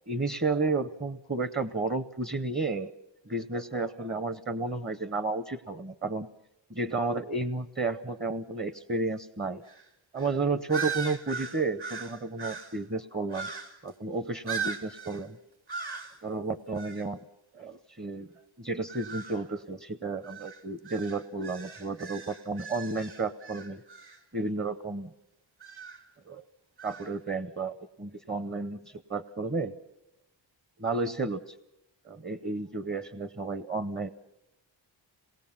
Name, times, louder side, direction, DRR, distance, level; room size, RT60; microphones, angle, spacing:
voice 1, 0.1-2.9 3.3-6.3 6.7-9.6 10.1-13.5 13.8-15.4 16.2-17.2 17.5-18.3 18.6-23.8 24.3-25.1 26.3-26.4 26.8-29.7 30.8-31.5 32.0-34.1, right 3 dB, 20° right, 13 dB, 0.8 m, -32 dB
sound 1, 9.7-9.9 10.2-10.4 10.7-12.8 13.3-13.9 14.5-15.2 15.7-16.2 16.8-17.1 18.9-19.4 20.2-24.2 25.6-26.0 26.8-27.1, right 6 dB, 55° right, 2.4 m, -39 dB
27.0 x 19.5 x 7.3 m, 0.89 s
wide cardioid pair, 100°, 46 cm